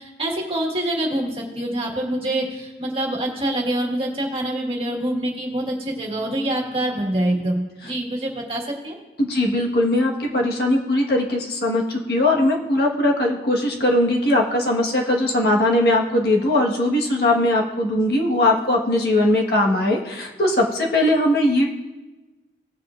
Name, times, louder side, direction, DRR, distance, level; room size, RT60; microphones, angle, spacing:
voice 1, 0.0-9.0, right 1 dB, 30° right, -1 dB, 1.7 m, -25 dB
voice 2, 9.2-21.6, left 1 dB, 60° left, -1 dB, 1.4 m, -20 dB
18.5 x 7.5 x 2.5 m, 1.2 s
head